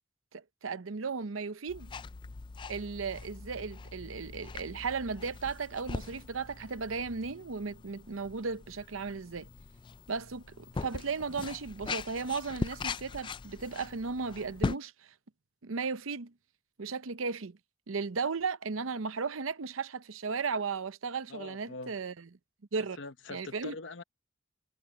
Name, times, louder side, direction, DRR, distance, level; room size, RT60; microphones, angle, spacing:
voice 1, 0.3-1.9 2.7-9.5 10.1-15.1 15.6-16.3 16.8-17.6 17.9-22.1 22.7-23.0 23.3-23.7, right 5 dB, 85° right, 0.8 m, -35 dB
sound 1, 1.7-14.8, left 4 dB, 25° left, 0.3 m, -41 dB
voice 2, 21.3-22.0 22.8-24.0, left 3 dB, 65° left, 0.9 m, -43 dB
head